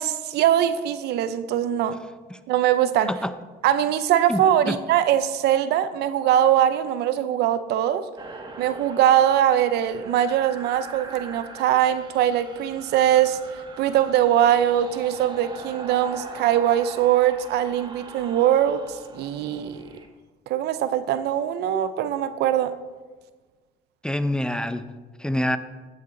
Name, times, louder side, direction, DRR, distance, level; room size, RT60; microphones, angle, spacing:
voice 1, 0.0-2.0 2.5-3.1 3.6-8.1 8.6-13.4 13.8-19.8 20.5-22.7, right 11 dB, 80° right, 0.7 m, -22 dB
voice 2, 4.3-4.8 24.0-24.9 25.2-25.6, left 1 dB, 5° left, 0.5 m, -26 dB
sound 1, 8.2-20.1, right 3 dB, 25° right, 1.4 m, -42 dB
16.0 x 6.7 x 3.9 m
cardioid pair, 110°, 17 cm